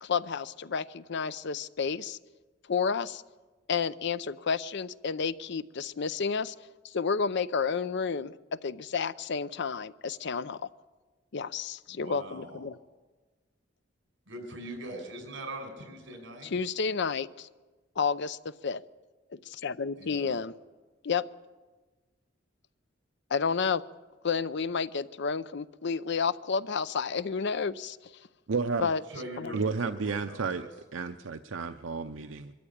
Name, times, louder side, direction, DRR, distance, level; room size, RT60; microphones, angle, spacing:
voice 1, 0.0-2.2 2.7-3.2 3.7-6.5 6.8-10.6 11.3-12.8 16.4-17.5 18.0-18.4 18.6-18.8 19.3-20.5 21.0-21.2 23.3-23.8 24.2-28.0 28.8-29.0 29.4-29.6, left 5 dB, 65° left, 16 dB, 0.6 m, -31 dB
voice 2, 11.9-12.7 14.3-16.5 20.0-20.4 29.1-30.7, right 1 dB, 70° right, 4 dB, 5.3 m, -42 dB
voice 3, 28.5-28.9 29.5-30.7 30.9-32.5, right 4 dB, 90° right, 8 dB, 0.6 m, -32 dB
22.5 x 13.5 x 8.6 m, 1.3 s
head